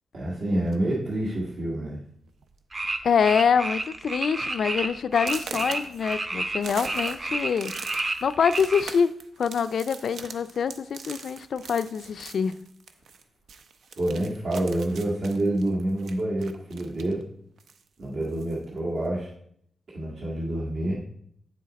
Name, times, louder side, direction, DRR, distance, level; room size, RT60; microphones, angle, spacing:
voice 1, 0.1-2.0 14.0-17.2 18.0-19.3 19.9-21.0, right 1 dB, 65° right, -6 dB, 1.8 m, -27 dB
sound 1, 0.6-1.0 1.8-1.9 2.3-2.5 2.8-3.3 3.7-3.8 4.3-4.4 5.2-13.2 13.5-17.2 17.6-18.6, right 5 dB, 85° right, 0.6 m, -42 dB
sound 2, 2.7-8.8, right 2 dB, 30° right, 0.7 m, -30 dB
voice 2, 3.0-7.7 8.2-9.1 9.4-12.5, left 6 dB, 65° left, 14 dB, 0.3 m, -25 dB
8.2 x 6.3 x 4.1 m, 0.69 s
wide cardioid pair, 140°, 0 cm